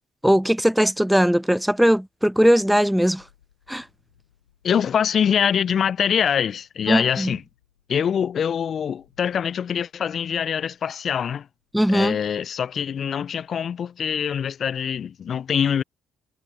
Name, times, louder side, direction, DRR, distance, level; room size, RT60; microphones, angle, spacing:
voice 1, 0.2-3.2 3.7-3.8 6.9-7.3 11.7-12.2, equal, ahead, 0.4 m, -19 dB
Thunderstorm, 2.1-13.6, left 10 dB, 85° left, 7.7 m, -66 dB
voice 2, 4.6-7.4 7.9-11.5 11.9-15.8, left 8 dB, 50° left, 0.6 m, -24 dB
figure-of-eight pair, 50°, 0 cm